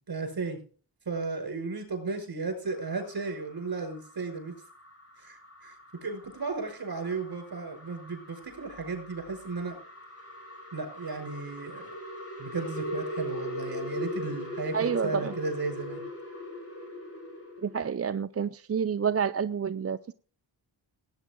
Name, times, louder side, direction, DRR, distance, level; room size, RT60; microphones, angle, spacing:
voice 1, 0.1-0.6 1.1-4.5 5.2-9.8 10.7-11.9 12.4-16.0, right 3 dB, 50° right, 5.5 m, -34 dB
sound 1, 2.6-17.8, left 1 dB, 30° left, 4.4 m, -41 dB
voice 2, 14.7-15.3 17.6-20.1, right 7 dB, 35° right, 0.5 m, -29 dB
17.5 x 9.1 x 3.8 m
wide cardioid pair, 100°, 44 cm